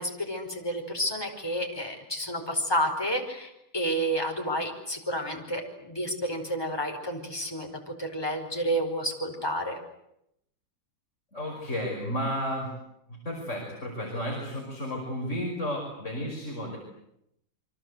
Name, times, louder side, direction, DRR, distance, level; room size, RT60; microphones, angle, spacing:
voice 1, 0.0-9.8, equal, 10° left, 2 dB, 4.9 m, -30 dB
voice 2, 11.3-12.7 13.1-16.8, equal, 35° left, 0 dB, 5.7 m, -32 dB
29.0 x 24.0 x 8.2 m, 0.80 s
omnidirectional pair, 2.2 m